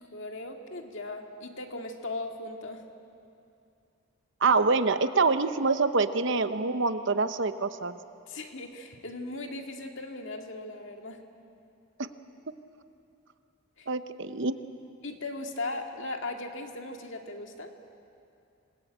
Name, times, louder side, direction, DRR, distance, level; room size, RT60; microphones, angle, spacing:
voice 1, 0.1-2.8 8.3-11.2 13.8-13.9 15.0-17.7, left 2 dB, 60° left, 3 dB, 2.1 m, -38 dB
voice 2, 4.4-7.9 12.0-12.1 13.9-14.5, right 4 dB, 55° right, 11 dB, 0.9 m, -25 dB
27.5 x 20.5 x 8.9 m, 2.6 s
head